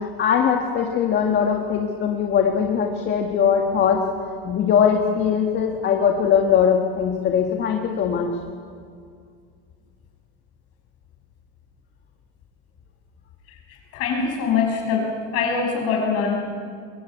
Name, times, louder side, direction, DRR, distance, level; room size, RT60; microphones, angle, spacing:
voice 1, 0.0-4.0 4.4-8.3, left 7 dB, 35° left, 2 dB, 1.7 m, -20 dB
voice 2, 13.9-16.3, left 5 dB, 50° left, 1 dB, 6.2 m, -23 dB
22.5 x 16.0 x 8.6 m, 2.2 s
supercardioid pair, 140°, 30 cm